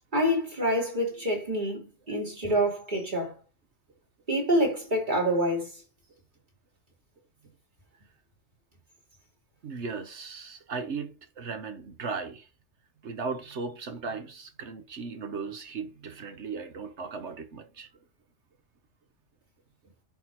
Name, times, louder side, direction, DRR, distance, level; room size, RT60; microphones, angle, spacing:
voice 1, 0.1-3.3 4.3-5.7, equal, 35° right, 3.1 m, -27 dB
voice 2, 9.6-12.5 13.0-17.9, right 4 dB, 60° right, 1.2 m, -37 dB
10.5 x 3.7 x 4.5 m
omnidirectional pair, 1.3 m